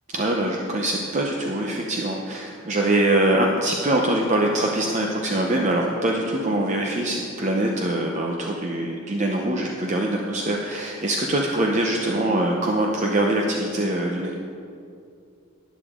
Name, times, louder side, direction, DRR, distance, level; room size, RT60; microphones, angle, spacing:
voice 1, 0.1-14.3, right 1 dB, 35° right, 0 dB, 0.7 m, -23 dB
12.0 x 10.5 x 3.7 m, 2.5 s
head